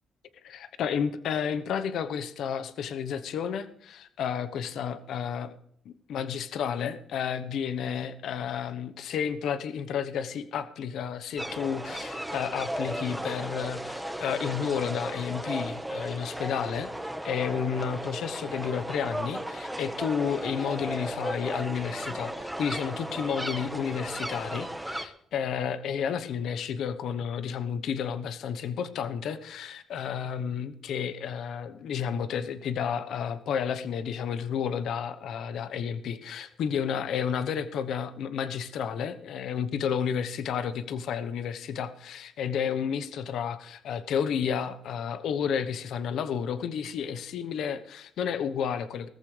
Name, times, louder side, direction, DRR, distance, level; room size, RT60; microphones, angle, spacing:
voice 1, 0.4-5.5 5.8-16.9 17.2-49.1, left 7 dB, 75° left, 11 dB, 1.1 m, -31 dB
sound 1, 11.4-25.0, right 1 dB, 5° right, 1.3 m, -35 dB
18.5 x 14.5 x 3.4 m, 0.66 s
cardioid pair, 90°, 0 cm